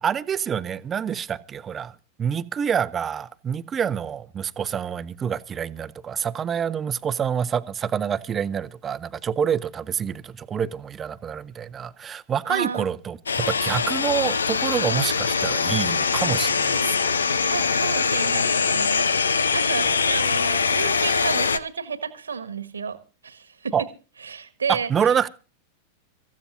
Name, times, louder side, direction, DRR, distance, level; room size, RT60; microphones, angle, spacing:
voice 1, 0.0-17.1 19.8-20.0 23.7-23.9 24.7-25.3, right 8 dB, 25° right, 0.7 m, -27 dB
voice 2, 12.5-12.9 17.4-19.1 19.5-23.0 23.2-23.7 24.2-24.9, right 5 dB, 75° right, 1.6 m, -31 dB
sound 1, 13.3-21.6, left 5 dB, 70° left, 0.6 m, -23 dB
26.0 x 15.0 x 2.6 m
figure-of-eight pair, 90°, 0 cm